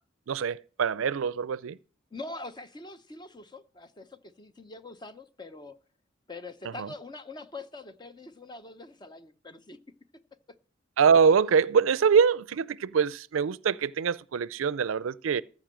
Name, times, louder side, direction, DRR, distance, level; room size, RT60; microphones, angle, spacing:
voice 1, 0.3-1.8 6.8-6.9 11.0-15.4, right 6 dB, 90° right, 0.4 m, -24 dB
voice 2, 2.1-5.8 6.3-9.8, left 2 dB, 20° left, 0.7 m, -43 dB
14.5 x 5.3 x 7.4 m
head